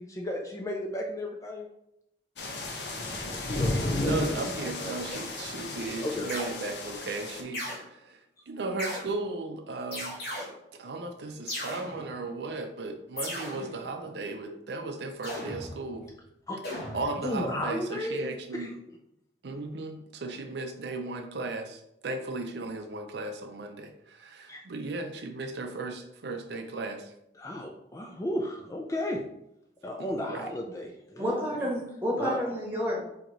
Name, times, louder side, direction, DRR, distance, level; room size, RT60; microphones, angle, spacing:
voice 1, 0.0-1.7 3.4-5.0 6.0-6.3 16.5-16.6 17.2-18.3 18.5-18.7 24.5-24.6 27.4-29.2 29.8-31.5 32.2-32.5, left 1 dB, 20° left, 1 dB, 0.4 m, -34 dB
sound 1, 2.4-7.4, left 2 dB, 80° left, 0.8 m, -33 dB
voice 2, 4.0-8.2 8.5-10.2 10.8-16.1 16.9-18.7 19.4-27.1 30.0-30.5, right 3 dB, 75° right, 5 dB, 0.5 m, -36 dB
sound 2, 5.1-5.5 6.3-6.8 7.5-7.8 8.8-9.3 9.9-10.8 11.5-12.4 13.2-14.0 15.2-16.1 16.6-17.5, left 1 dB, 60° left, 1.4 m, -37 dB
voice 3, 31.2-33.0, equal, 10° right, -4 dB, 1.2 m, -30 dB
4.5 x 2.9 x 3.8 m, 0.82 s
head